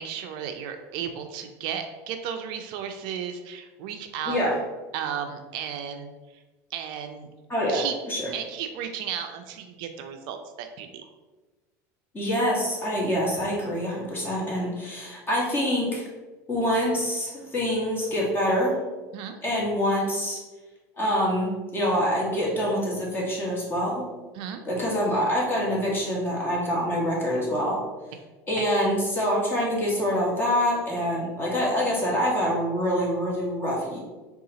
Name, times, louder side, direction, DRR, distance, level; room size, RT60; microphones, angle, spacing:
voice 1, 0.0-4.5 4.9-6.1 6.7-7.3 7.7-7.9 8.3-11.0 19.1-19.4 24.3-24.6, right 8 dB, 60° right, 6 dB, 0.4 m, -34 dB
voice 2, 4.2-4.5 7.5-8.3 12.1-16.1 16.5-18.8 19.4-20.4 21.0-24.0 24.6-27.8 28.5-34.0, equal, 25° left, -4 dB, 1.5 m, -25 dB
4.0 x 2.4 x 3.8 m, 1.2 s
supercardioid pair, 105°, 9 cm